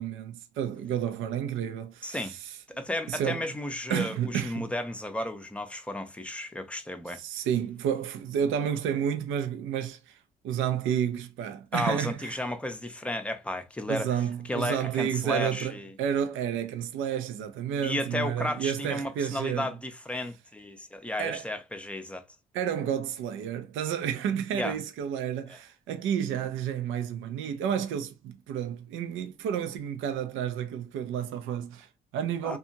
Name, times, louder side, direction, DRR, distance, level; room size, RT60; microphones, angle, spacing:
voice 1, 0.0-2.6 3.1-3.5 3.9-4.7 7.1-10.2 10.4-12.4 13.9-19.7 21.2-21.4 22.5-32.6, right 9 dB, 90° right, 0.5 m, -31 dB
voice 2, 2.0-2.4 2.7-7.2 11.7-14.1 14.5-15.9 17.8-22.2 24.5-24.8 32.4-32.6, left 1 dB, 5° left, 0.5 m, -33 dB
2.7 x 2.3 x 2.6 m
cardioid pair, 90°, 20 cm